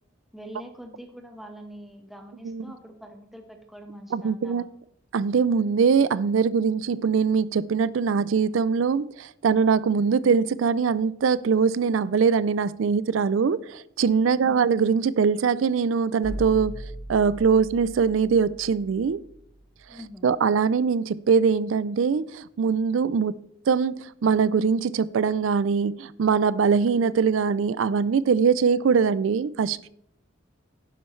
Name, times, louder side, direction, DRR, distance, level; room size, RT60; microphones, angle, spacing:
voice 1, 0.3-4.7 14.2-14.6 19.9-20.3, equal, ahead, 1.2 m, -43 dB
voice 2, 4.1-4.6 5.1-16.8 17.1-19.2 20.2-23.4 23.7-29.9, right 6 dB, 80° right, 0.4 m, -22 dB
sound 1, 16.2-20.1, right 1 dB, 70° left, 2.6 m, -39 dB
11.5 x 9.9 x 3.2 m
head